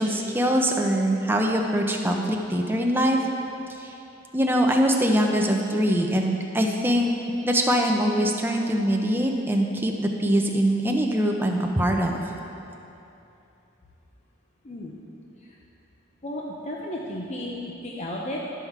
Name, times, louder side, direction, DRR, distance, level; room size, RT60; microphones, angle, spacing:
voice 1, 0.0-3.2 3.8-3.9 4.3-7.1 7.4-12.1, equal, 10° right, 1 dB, 0.6 m, -23 dB
voice 2, 14.6-15.0 16.2-18.4, left 1 dB, 35° left, -2 dB, 0.7 m, -33 dB
11.5 x 5.7 x 4.6 m, 2.8 s
head